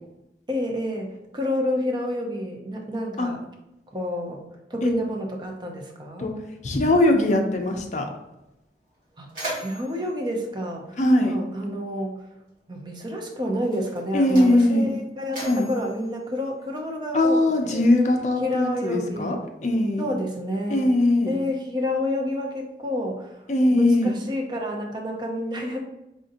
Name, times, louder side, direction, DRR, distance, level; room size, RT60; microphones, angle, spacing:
voice 1, 0.5-3.4 3.9-4.4 4.7-6.3 9.2-9.3 9.6-12.3 12.7-17.4 17.6-17.9 18.4-19.4 20.0-20.9 21.3-23.4 23.7-25.8, left 1 dB, 25° right, 1 dB, 0.5 m, -29 dB
voice 2, 6.6-8.1 11.0-11.4 14.1-14.9 15.4-15.7 17.1-19.4 19.6-20.1 20.7-21.4 23.5-24.2, left 1 dB, 40° left, 3 dB, 0.5 m, -20 dB
Mechanisms, 8.4-8.5 8.8-11.6 12.6-12.7 13.5-17.1, right 1 dB, 50° right, 1.5 m, -39 dB
4.9 x 2.6 x 2.6 m, 0.92 s
head